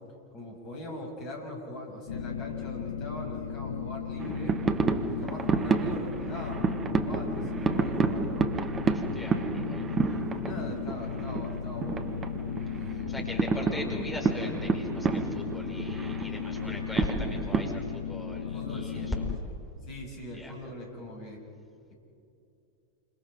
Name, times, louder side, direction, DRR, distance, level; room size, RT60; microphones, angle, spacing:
voice 1, 0.3-4.6 5.1-8.5 8.9-9.3 10.0-12.1 12.8-13.3 18.5-19.1 19.4-19.5 19.8-21.4 21.9-22.0, left 1 dB, 40° left, 1 dB, 7.2 m, -42 dB
sound 1, 2.1-19.4, left 7 dB, 65° left, 0.8 m, -36 dB
sound 2, 4.2-17.7, right 5 dB, 20° right, 1.4 m, -30 dB
voice 2, 8.8-9.8 12.9-19.2 20.3-20.5, left 1 dB, 10° left, 0 dB, 5.0 m, -39 dB
28.5 x 27.0 x 5.3 m, 2.6 s
figure-of-eight pair, 90°, 0 cm